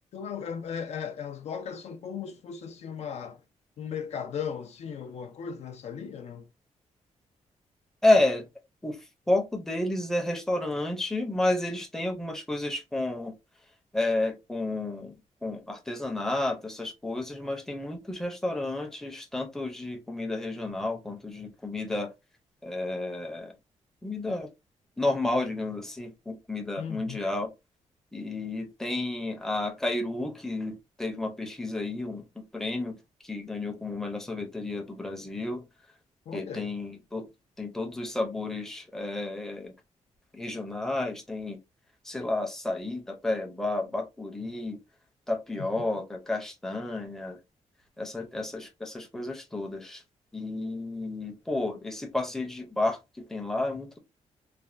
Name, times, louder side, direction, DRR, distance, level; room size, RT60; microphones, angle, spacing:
voice 1, 0.1-3.4 3.8-6.5 26.8-27.2 36.3-36.7 45.6-45.7, left 7 dB, 60° left, 0.4 m, -37 dB
voice 2, 8.0-8.5 8.8-13.4 13.9-15.1 15.4-22.1 22.6-23.5 24.0-24.5 25.0-27.5 28.1-35.7 36.3-37.3 37.6-39.7 40.3-41.6 42.0-44.8 45.3-47.4 48.0-50.0 50.3-54.0, left 2 dB, 5° left, 0.5 m, -31 dB
3.2 x 2.1 x 2.4 m
wide cardioid pair, 170°, 13 cm